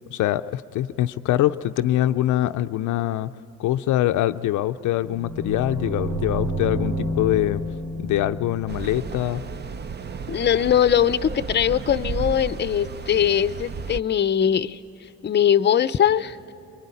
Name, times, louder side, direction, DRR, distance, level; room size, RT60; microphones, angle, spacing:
voice 1, 0.1-3.3 3.6-7.6 8.0-9.4, left 14 dB, 75° left, 10 dB, 0.5 m, -23 dB
sound 1, 4.9-9.9, right 1 dB, 80° right, 4.6 m, -30 dB
sound 2, 8.7-14.0, right 4 dB, 35° right, 0.7 m, -33 dB
voice 2, 10.3-14.8 15.2-16.5, left 9 dB, 35° left, 14 dB, 0.6 m, -21 dB
23.5 x 23.0 x 9.8 m, 2.8 s
cardioid pair, 90°, 30 cm